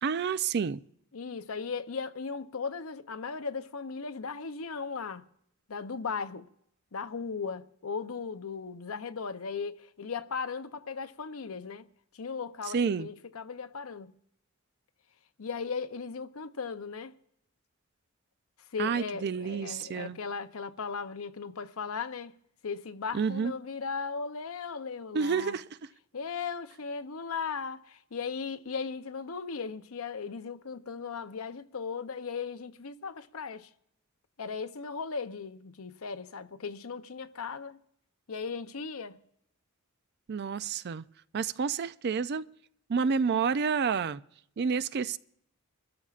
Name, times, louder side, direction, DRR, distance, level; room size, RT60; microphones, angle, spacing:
voice 1, 0.0-0.8 12.7-13.1 18.8-20.2 23.1-23.5 25.1-25.6 40.3-41.0 41.3-42.5 42.9-44.2 44.6-45.2, right 6 dB, 50° right, 0.4 m, -29 dB
voice 2, 1.1-5.3 5.7-6.5 6.9-14.1 15.4-17.1 18.6-22.4 22.6-25.6 26.1-33.7 34.4-37.8 38.3-39.2, left 5 dB, 85° left, 0.7 m, -37 dB
27.0 x 13.5 x 2.5 m
head